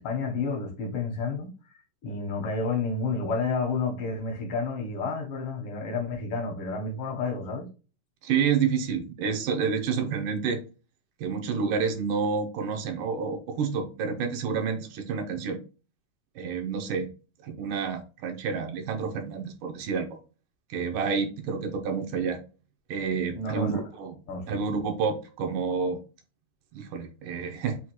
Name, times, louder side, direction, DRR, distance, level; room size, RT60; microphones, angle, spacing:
voice 1, 0.0-1.5 2.0-7.7 23.3-23.8 24.3-24.6, left 4 dB, 75° left, 1.3 m, -30 dB
voice 2, 8.2-10.6 11.2-15.6 16.4-17.1 17.4-20.2 20.7-22.4 22.9-24.2 24.5-26.0 26.7-27.8, right 6 dB, 80° right, 2.4 m, -29 dB
6.1 x 2.4 x 2.9 m
omnidirectional pair, 3.8 m